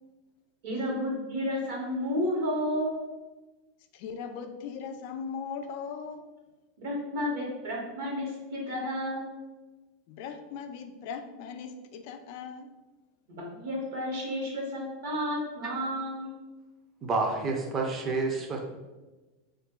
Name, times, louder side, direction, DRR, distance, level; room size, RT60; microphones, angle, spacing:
voice 1, 0.6-3.0 6.8-9.3 13.3-16.3, equal, 70° right, -2 dB, 1.2 m, -31 dB
voice 2, 3.9-6.3 10.1-12.7, left 6 dB, 60° left, 8 dB, 0.3 m, -39 dB
voice 3, 17.0-18.6, right 3 dB, 30° right, 1 dB, 0.6 m, -29 dB
2.5 x 2.3 x 3.6 m, 1.2 s
hypercardioid pair, 105°, 0 cm